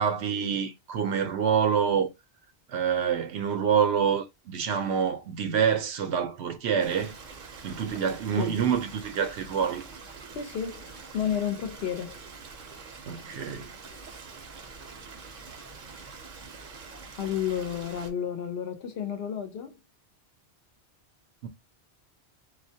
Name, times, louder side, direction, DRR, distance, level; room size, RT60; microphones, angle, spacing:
voice 1, 0.0-2.1 2.7-7.1 7.6-9.8 13.1-13.7 21.4-21.5, right 7 dB, 80° right, 0.9 m, -26 dB
Stream, 6.8-18.1, right 4 dB, 55° right, 0.7 m, -45 dB
voice 2, 10.3-12.2 17.2-19.8, left 8 dB, 75° left, 0.8 m, -31 dB
2.3 x 2.1 x 2.6 m
omnidirectional pair, 1.1 m